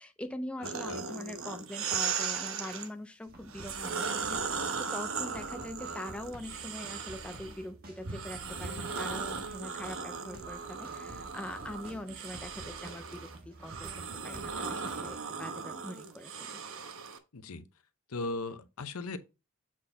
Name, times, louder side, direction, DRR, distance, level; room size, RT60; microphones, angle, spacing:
voice 1, 0.0-13.9 14.2-16.6, left 1 dB, 5° left, 0.4 m, -43 dB
voice 2, 0.6-1.0 17.3-17.7 18.1-19.2, left 3 dB, 85° left, 0.8 m, -38 dB
sound 1, 0.6-2.9 3.5-7.6 8.0-17.2, right 5 dB, 65° right, 0.9 m, -37 dB
sound 2, 3.3-15.2, right 1 dB, 40° right, 1.7 m, -51 dB
7.5 x 4.1 x 3.9 m
head